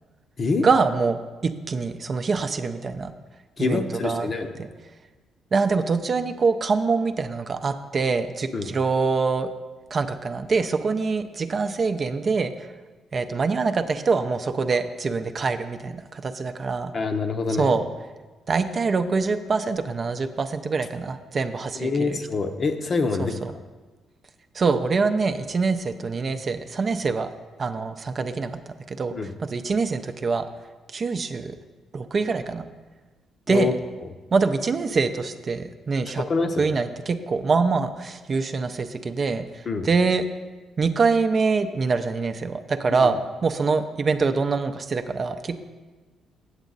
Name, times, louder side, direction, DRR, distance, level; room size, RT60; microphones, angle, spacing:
voice 1, 0.6-3.1 3.6-4.3 4.6-4.7 5.5-9.5 9.9-12.7 13.1-16.9 17.6-17.8 18.5-22.2 23.2-23.5 24.5-27.3 27.6-29.1 29.4-30.5 30.9-31.6 31.9-32.7 33.5-33.8 34.3-36.2 36.6-40.2 40.8-45.6, right 4 dB, 40° right, 8 dB, 0.5 m, -24 dB
voice 2, 3.6-4.5 8.5-8.7 16.9-17.8 21.8-23.3 29.1-29.3 33.5-33.7 36.3-36.6 39.7-39.9 43.0-43.1, left 4 dB, 45° left, 7 dB, 0.7 m, -25 dB
8.0 x 7.3 x 3.9 m, 1.3 s
cardioid pair, 90°, 0 cm